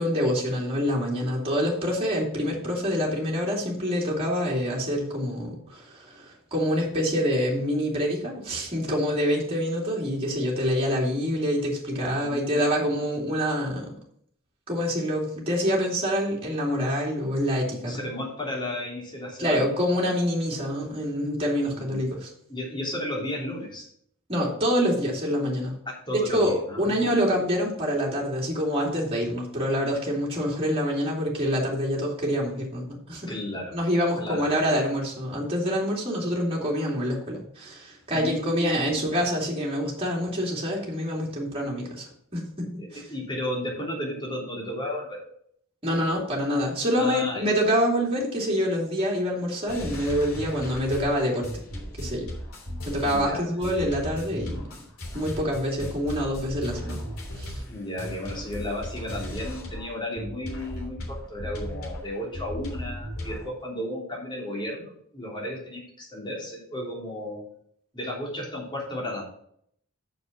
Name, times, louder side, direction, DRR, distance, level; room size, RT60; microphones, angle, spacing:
voice 1, 0.0-13.9 14.7-18.0 19.4-22.3 24.3-25.8 26.1-33.3 33.7-43.0 45.8-51.5 52.0-52.3 52.9-54.6 55.1-57.0 57.4-57.5, equal, 30° right, -3 dB, 2.7 m, -26 dB
voice 2, 12.2-12.7 17.8-19.6 21.7-22.1 22.5-23.9 25.8-27.2 33.3-33.8 34.2-34.6 38.1-39.2 42.8-45.2 47.0-47.5 53.0-53.5 57.7-67.4 67.9-69.3, left 1 dB, 20° left, -3 dB, 3.2 m, -34 dB
sound 1, 49.7-59.9 60.2-63.5, equal, 90° left, 3.0 m, -36 dB
7.1 x 6.5 x 6.0 m, 0.68 s
head